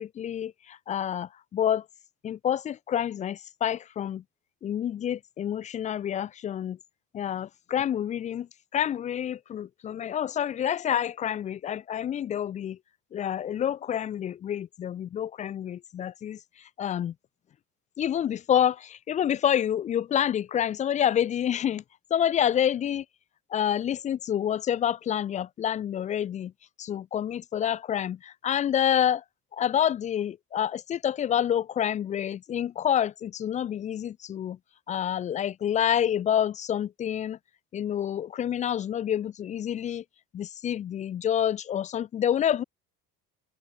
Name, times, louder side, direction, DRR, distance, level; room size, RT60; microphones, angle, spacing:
voice 1, 0.0-1.8 2.2-4.2 4.6-6.8 7.1-8.5 8.7-12.8 13.1-16.4 16.8-17.1 18.0-21.8 22.1-23.0 23.5-26.5 26.8-29.2 29.5-34.6 34.9-37.4 37.7-40.0 40.3-42.6, left 9 dB, 20° left, 0.3 m, -28 dB
open air
figure-of-eight pair, 55°, 45 cm